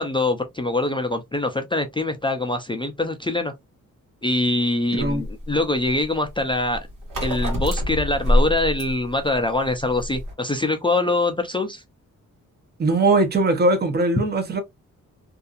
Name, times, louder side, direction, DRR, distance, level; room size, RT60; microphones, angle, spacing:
voice 1, 0.0-3.5 4.2-6.8 7.2-11.8, left 2 dB, 15° left, 0.4 m, -24 dB
voice 2, 4.9-5.2 12.8-14.6, right 2 dB, 30° right, 0.7 m, -20 dB
sound 1, 5.0-10.3, left 1 dB, 75° right, 1.4 m, -25 dB
2.6 x 2.4 x 2.4 m
cardioid pair, 95°, 32 cm